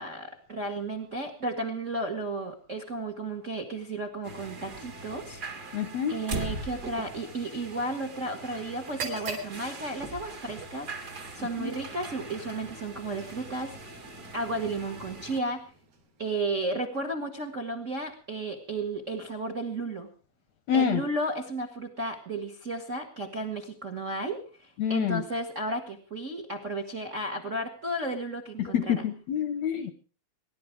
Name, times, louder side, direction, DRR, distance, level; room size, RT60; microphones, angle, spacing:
voice 1, 0.0-5.8 6.1-14.0 14.3-15.6 16.2-20.1 20.7-29.1, right 2 dB, 55° right, 6 dB, 0.8 m, -33 dB
sound 1, 4.2-15.4, right 2 dB, 40° right, 1.6 m, -41 dB
voice 2, 5.7-6.1 11.6-11.7 20.7-21.0 24.8-25.2 28.6-29.9, left 8 dB, 75° left, 10 dB, 1.6 m, -27 dB
sound 2, 8.8-16.6, right 4 dB, 75° right, 5.7 m, -45 dB
23.5 x 11.5 x 4.6 m, 0.38 s
omnidirectional pair, 4.5 m